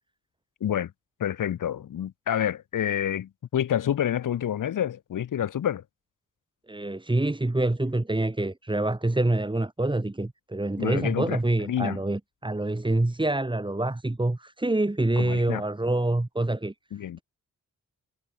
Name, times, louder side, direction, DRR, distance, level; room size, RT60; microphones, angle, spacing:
voice 1, 0.6-0.9 1.2-5.8 10.8-11.4 11.7-12.0 15.2-15.6 16.9-17.2, left 10 dB, 75° left, 1.0 m, -28 dB
voice 2, 6.7-16.7, right 2 dB, 15° right, 4.6 m, -26 dB
wide cardioid pair, 95°, 32 cm